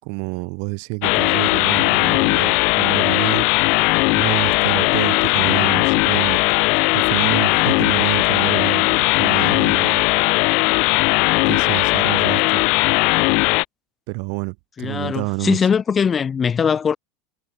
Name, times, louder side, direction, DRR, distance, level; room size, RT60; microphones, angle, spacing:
voice 1, 0.0-3.5 3.8-6.4 6.9-10.0 11.4-12.6 14.1-15.6, right 40 dB or more, 55° right, 5.6 m, -28 dB
sound 1, 1.0-13.6, left 31 dB, 55° left, 0.7 m, -18 dB
voice 2, 14.8-17.0, left 7 dB, 25° left, 7.4 m, -20 dB
figure-of-eight pair, 75°, 0 cm